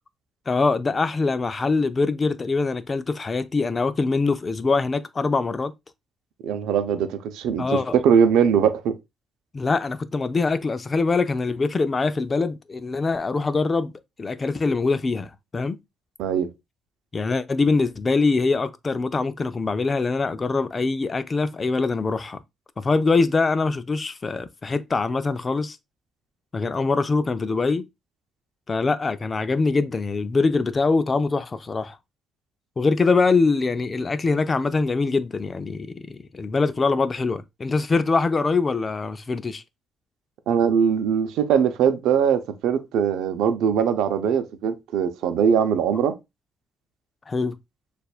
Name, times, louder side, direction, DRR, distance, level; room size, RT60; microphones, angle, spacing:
voice 1, 0.5-5.7 7.6-8.0 9.5-13.9 14.2-15.8 17.1-22.4 22.8-25.8 26.5-27.9 28.7-32.0 32.8-39.6 47.3-47.6, left 4 dB, 30° left, 0.5 m, -23 dB
voice 2, 6.4-7.6 7.9-8.9 16.2-16.5 40.5-46.1, right 7 dB, 90° right, 0.6 m, -21 dB
6.7 x 2.5 x 2.4 m
cardioid pair, 90°, 0 cm